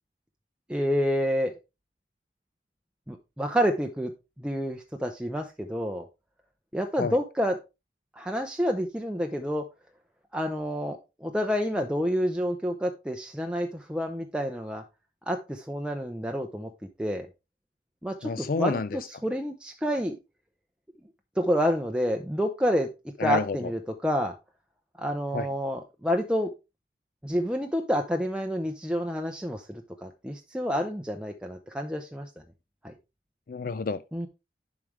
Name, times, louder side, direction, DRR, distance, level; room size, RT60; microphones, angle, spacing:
voice 1, 0.7-1.5 3.1-4.1 4.4-6.1 6.7-7.6 8.2-9.6 10.3-14.8 15.3-16.7 17.0-17.3 18.0-20.2 21.4-22.9 23.2-24.3 25.0-26.5 27.2-32.3 32.8-32.9 34.1-34.3, equal, 5° right, 0.6 m, -28 dB
voice 2, 18.2-18.9 23.2-23.6 25.3-25.5 33.5-34.0, left 4 dB, 50° left, 0.4 m, -29 dB
11.0 x 4.9 x 3.2 m
head